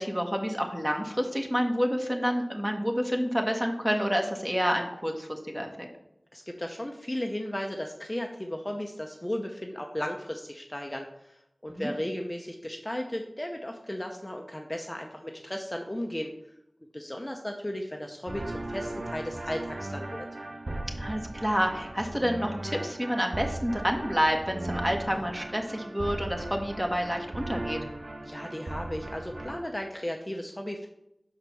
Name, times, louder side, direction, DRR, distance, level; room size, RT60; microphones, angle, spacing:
voice 1, 0.0-5.9 11.7-11.9 21.0-27.8, equal, 15° right, 2 dB, 1.5 m, -29 dB
voice 2, 6.3-16.3 16.9-20.3 28.2-30.9, left 1 dB, 20° left, 2 dB, 0.8 m, -35 dB
sound 1, 18.3-29.6, right 2 dB, 50° right, 0.6 m, -37 dB
5.6 x 5.1 x 6.2 m, 0.82 s
wide cardioid pair, 50°, 0 cm